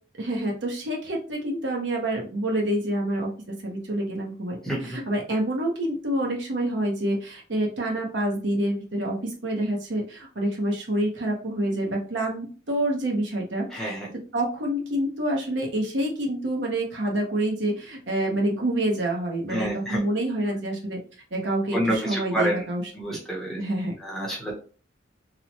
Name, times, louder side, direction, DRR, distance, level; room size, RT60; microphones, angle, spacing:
voice 1, 0.2-4.6 4.8-14.0 14.3-21.0 21.3-22.8 23.1-23.2 23.6-23.9, right 1 dB, 60° right, -1 dB, 0.8 m, -27 dB
voice 2, 4.6-5.0 13.7-14.1 19.5-20.0 21.7-22.6 22.9-23.6 24.0-24.5, right 1 dB, ahead, -3 dB, 0.7 m, -28 dB
2.9 x 2.1 x 2.7 m, 0.38 s
head